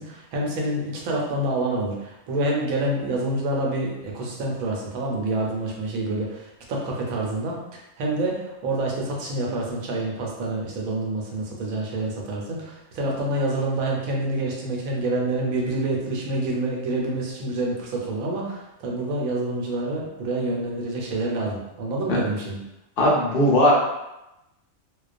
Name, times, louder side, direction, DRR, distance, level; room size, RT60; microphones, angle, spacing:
voice 1, 0.0-22.6, right 2 dB, 90° right, -2 dB, 1.1 m, -27 dB
voice 2, 23.0-23.7, left 1 dB, 55° left, -4 dB, 0.7 m, -18 dB
2.3 x 2.2 x 2.4 m, 0.91 s
omnidirectional pair, 1.4 m